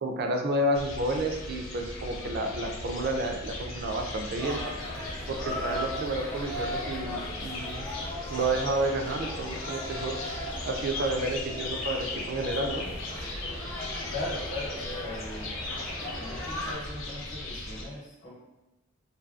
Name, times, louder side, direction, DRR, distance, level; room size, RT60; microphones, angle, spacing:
voice 1, 0.0-4.6 5.3-7.8 8.3-10.1 10.7-12.9, right 1 dB, 55° right, 3 dB, 0.4 m, -30 dB
sound 1, 0.7-17.8, left 2 dB, 70° left, 0.5 m, -38 dB
sound 2, 4.4-16.7, left 1 dB, 15° left, 0.5 m, -38 dB
voice 2, 14.1-15.5 16.0-18.4, left 1 dB, 55° left, -7 dB, 0.9 m, -38 dB
2.7 x 2.6 x 2.3 m, 1.0 s
head